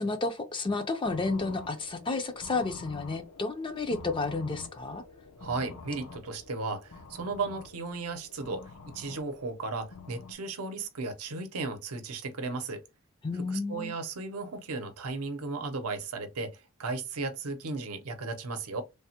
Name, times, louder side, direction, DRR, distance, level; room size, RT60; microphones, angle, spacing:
voice 1, 0.0-5.0 13.2-13.9, left 3 dB, 20° left, 0.4 m, -31 dB
sound 1, 1.0-10.3, left 3 dB, 65° left, 0.6 m, -48 dB
voice 2, 5.4-12.8 13.7-18.8, right 3 dB, 80° right, 0.7 m, -35 dB
3.3 x 2.1 x 2.8 m
head